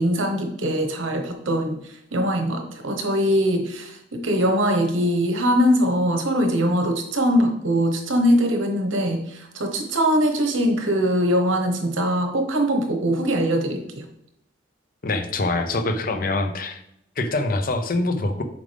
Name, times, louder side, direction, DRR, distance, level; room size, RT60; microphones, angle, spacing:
voice 1, 0.0-1.8 2.1-14.0, equal, 90° right, 4 dB, 1.2 m, -22 dB
voice 2, 15.0-16.8 17.2-18.4, left 2 dB, 45° left, 7 dB, 0.7 m, -24 dB
7.2 x 5.1 x 3.4 m, 0.75 s
head